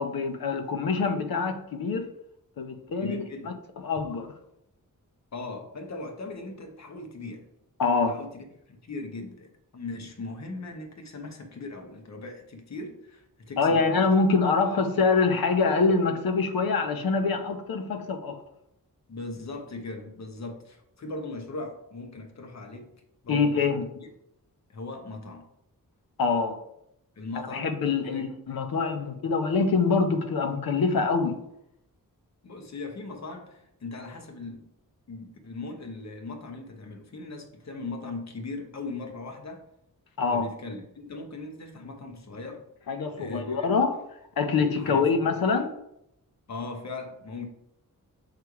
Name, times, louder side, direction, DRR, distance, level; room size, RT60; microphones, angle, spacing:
voice 1, 0.0-2.1 2.6-3.5 3.8-4.3 7.8-8.3 13.6-18.4 23.3-23.9 26.2-26.6 27.5-31.4 40.2-40.5 42.9-44.0 44.4-45.7, left 4 dB, 85° left, 0.8 m, -25 dB
voice 2, 3.0-3.6 5.3-7.5 8.1-13.9 19.1-22.9 23.2-23.8 24.7-25.5 27.2-27.7 28.0-28.3 32.4-34.7 35.1-39.7 40.3-42.7 43.1-43.7 44.8-45.1 46.5-47.5, left 3 dB, 50° left, 0.9 m, -39 dB
6.7 x 3.3 x 4.6 m
wide cardioid pair, 145°, 34 cm